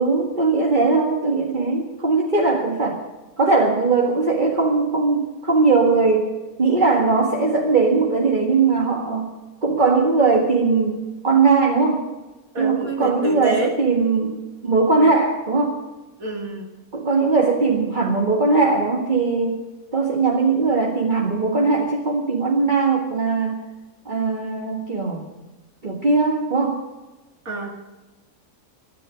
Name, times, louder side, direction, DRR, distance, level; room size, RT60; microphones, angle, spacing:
voice 1, 0.0-3.0 3.4-9.3 9.6-12.0 12.6-15.8 16.9-19.6 19.9-23.6 24.1-25.3 25.8-26.8, right 4 dB, 30° right, -1 dB, 1.9 m, -20 dB
voice 2, 12.5-13.7 16.2-16.7 27.5-27.8, right 2 dB, 65° right, 0 dB, 2.4 m, -27 dB
24.5 x 10.5 x 5.1 m, 1.2 s
omnidirectional pair, 1.6 m